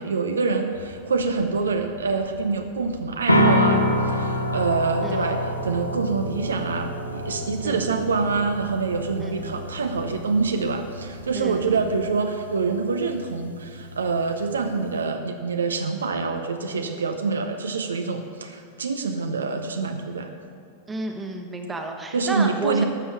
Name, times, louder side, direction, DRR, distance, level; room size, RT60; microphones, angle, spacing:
voice 1, 0.0-20.3 22.1-22.8, right 4 dB, 70° right, 5 dB, 0.7 m, -26 dB
sound 1, 0.7-12.1, left 3 dB, 65° left, 1.3 m, -45 dB
sound 2, 3.3-15.0, equal, 85° left, 0.9 m, -27 dB
voice 2, 5.0-5.4 7.6-8.0 9.2-9.6 11.3-11.9 20.9-22.8, right 2 dB, 15° right, 3 dB, 1.3 m, -32 dB
12.5 x 7.0 x 6.2 m, 2.4 s
figure-of-eight pair, 90°, 0 cm